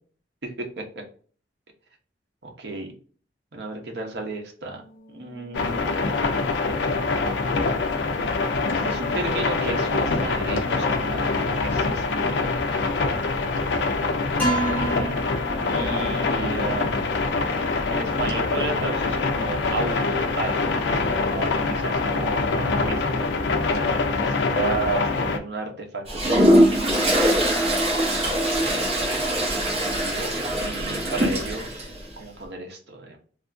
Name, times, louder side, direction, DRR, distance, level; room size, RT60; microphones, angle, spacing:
voice 1, 0.4-0.8 2.4-2.9 3.5-4.8 5.1-5.9 7.4-7.5 8.7-12.3 14.4-15.2 15.7-16.9 17.9-20.8 21.3-23.3 23.7-27.3 28.2-28.9 29.4-30.3 30.6-33.2, right 3 dB, 60° right, 2 dB, 0.8 m, -33 dB
sound 1, 5.5-25.4, left 3 dB, 65° left, 0.4 m, -24 dB
sound 2, 14.4-22.4, right 1 dB, 10° left, 1.1 m, -36 dB
Toilet flush, 26.1-31.9, equal, 35° right, 0.9 m, -22 dB
3.3 x 2.5 x 2.5 m, 0.43 s
head